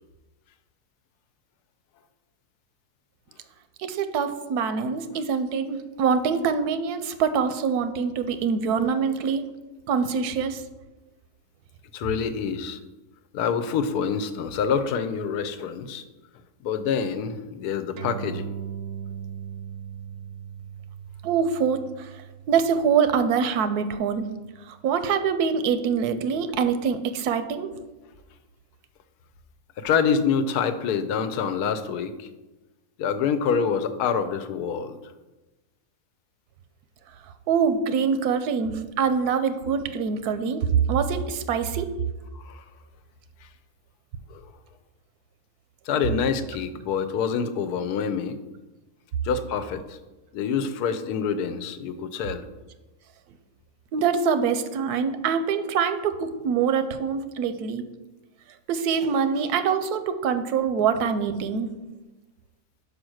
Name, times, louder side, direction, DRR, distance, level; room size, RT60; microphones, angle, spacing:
voice 1, 3.8-9.5 9.9-10.6 21.2-22.1 22.5-24.3 24.7-27.7 37.5-41.9 53.9-57.8 58.7-61.7, right 6 dB, 85° right, 10 dB, 1.1 m, -24 dB
voice 2, 11.9-12.8 13.3-16.0 16.6-18.5 29.8-32.3 33.0-35.0 42.3-42.6 44.3-44.4 45.9-48.4 49.2-50.0 50.3-52.4, left 6 dB, 90° left, 10 dB, 1.2 m, -26 dB
sound 1, 18.0-24.8, right 8 dB, 65° right, 0.6 m, -39 dB
5.6 x 5.0 x 6.2 m, 1.1 s
omnidirectional pair, 1.6 m